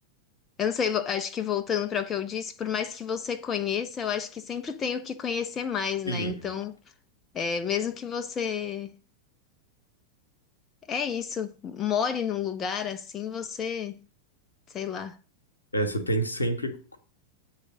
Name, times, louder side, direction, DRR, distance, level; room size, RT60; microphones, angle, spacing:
voice 1, 0.6-6.7 7.3-8.9 10.9-14.0 14.7-15.2, left 7 dB, 25° left, 0.4 m, -30 dB
voice 2, 15.7-17.0, right 1 dB, 80° left, 1.0 m, -28 dB
8.4 x 3.2 x 6.2 m
figure-of-eight pair, 90°, 0 cm